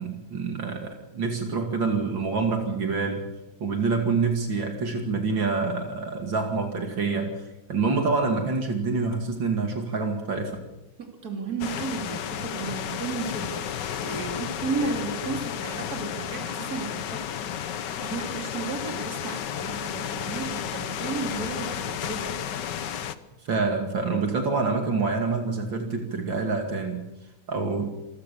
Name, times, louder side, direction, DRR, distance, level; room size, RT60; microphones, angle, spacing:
voice 1, 0.0-3.2 3.6-7.3 7.7-10.6 23.4-27.0 27.5-27.9, right 4 dB, 75° right, 3 dB, 3.1 m, -26 dB
voice 2, 11.0-22.3, right 4 dB, 50° right, 3 dB, 3.5 m, -34 dB
sound 1, 11.6-23.1, left 9 dB, 65° left, 1.6 m, -32 dB
26.5 x 17.0 x 7.0 m, 0.99 s
omnidirectional pair, 2.1 m